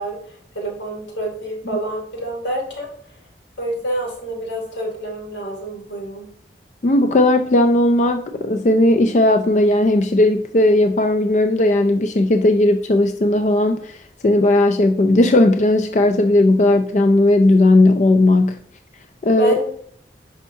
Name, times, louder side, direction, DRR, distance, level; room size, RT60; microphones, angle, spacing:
voice 1, 0.0-2.9 3.6-6.3 19.3-19.7, right 1 dB, 90° left, 0 dB, 2.6 m, -27 dB
voice 2, 6.8-14.0 14.2-18.6 19.2-19.5, left 1 dB, 40° left, 7 dB, 0.4 m, -16 dB
9.8 x 5.4 x 2.7 m, 0.62 s
head